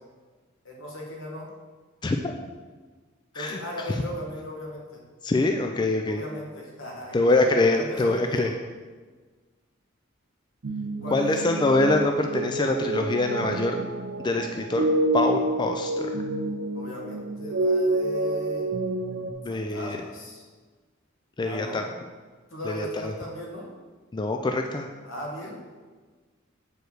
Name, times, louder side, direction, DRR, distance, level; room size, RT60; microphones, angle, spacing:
voice 1, 0.6-1.5 3.3-5.0 6.1-8.5 11.0-11.4 16.7-18.7 19.5-20.4 21.4-21.9 22.5-23.7 25.0-25.6, equal, 75° left, -2 dB, 1.8 m, -38 dB
voice 2, 5.2-6.2 7.1-8.5 11.1-13.8 14.2-14.9 15.1-16.2 19.4-20.0 21.4-21.8 22.7-23.1 24.1-24.9, left 2 dB, 20° left, 4 dB, 0.3 m, -24 dB
sound 1, 10.6-19.3, right 2 dB, 65° right, 0.6 m, -28 dB
7.9 x 4.8 x 4.8 m, 1.4 s
head